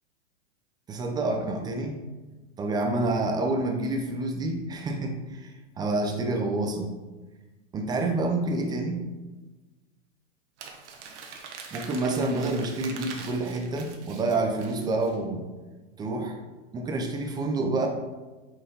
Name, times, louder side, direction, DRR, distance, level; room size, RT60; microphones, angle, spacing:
voice 1, 0.9-2.0 2.6-6.9 7.7-9.0 11.7-15.4 16.0-16.4 16.7-17.9, right 2 dB, 10° right, 3 dB, 0.4 m, -28 dB
Crumpling crinkling, 10.6-15.2, right 5 dB, 65° right, 1.2 m, -43 dB
6.2 x 4.6 x 3.9 m, 1.2 s
hypercardioid pair, 125°, 38 cm